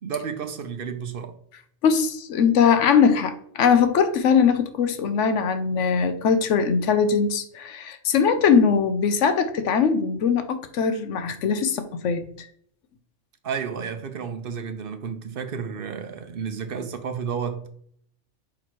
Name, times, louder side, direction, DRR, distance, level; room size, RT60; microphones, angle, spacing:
voice 1, 0.0-1.3 13.4-17.7, right 6 dB, 55° right, 0.8 m, -31 dB
voice 2, 1.8-12.5, left 6 dB, 80° left, 1.0 m, -21 dB
5.0 x 4.5 x 4.4 m
omnidirectional pair, 1.2 m